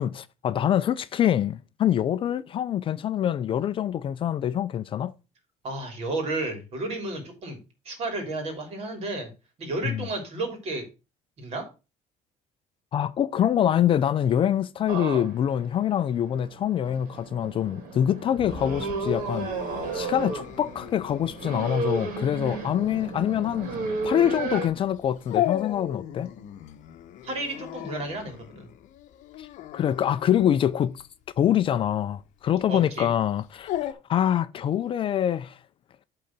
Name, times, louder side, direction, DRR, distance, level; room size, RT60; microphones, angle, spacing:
voice 1, 0.0-5.1 9.8-10.1 12.9-23.7 24.0-26.3 29.4-29.5 29.7-31.0 31.4-35.6, left 10 dB, 40° left, 0.4 m, -25 dB
voice 2, 5.6-7.6 7.8-9.3 9.6-10.8 11.4-11.6 27.2-28.7 32.7-33.1, right 2 dB, 45° right, 3.0 m, -32 dB
sound 1, 14.9-24.7, right 4 dB, 70° right, 2.5 m, -33 dB
Bowed string instrument, 18.3-22.9, left 5 dB, 15° right, 1.9 m, -49 dB
Dog, 18.4-33.9, left 13 dB, 60° left, 0.8 m, -37 dB
8.4 x 3.9 x 5.8 m
cardioid pair, 145°, 14 cm